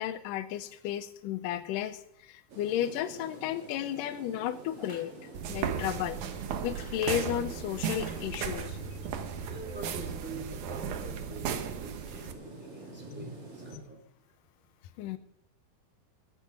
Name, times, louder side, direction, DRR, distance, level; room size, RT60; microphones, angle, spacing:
voice 1, 0.0-5.1 5.5-6.2 6.6-8.8 15.0-15.2, left 11 dB, 80° left, 11 dB, 2.0 m, -33 dB
sound 1, 2.5-13.8, right 2 dB, 40° right, 3.4 m, -47 dB
sound 2, 4.8-5.2 6.6-7.0 7.9-8.7, left 1 dB, 15° left, 1.3 m, -51 dB
sound 3, 5.3-12.3, right 7 dB, 65° right, 2.1 m, -36 dB
voice 2, 9.5-14.0, right 2 dB, 5° right, 2 dB, 2.6 m, -46 dB
20.5 x 9.1 x 5.2 m, 0.79 s
omnidirectional pair, 4.5 m